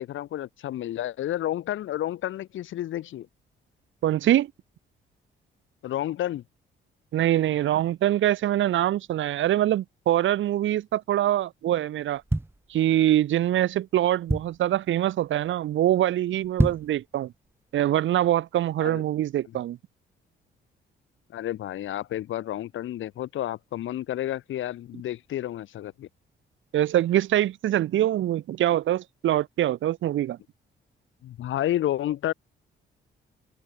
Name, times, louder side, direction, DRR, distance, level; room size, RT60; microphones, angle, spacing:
voice 1, 0.0-3.3 5.8-6.4 18.8-19.0 21.3-26.1 31.2-32.3, left 12 dB, 80° left, 6.3 m, -30 dB
voice 2, 4.0-4.5 7.1-12.2 12.7-17.3 17.7-19.8 26.7-30.4, right 12 dB, 75° right, 2.3 m, -24 dB
sound 1, 12.0-13.3 13.8-13.9 14.0-14.8 15.2-15.5 15.8-15.9 16.4-17.0 17.5-17.6, right 2 dB, 10° right, 3.8 m, -27 dB
cardioid pair, 90°, 20 cm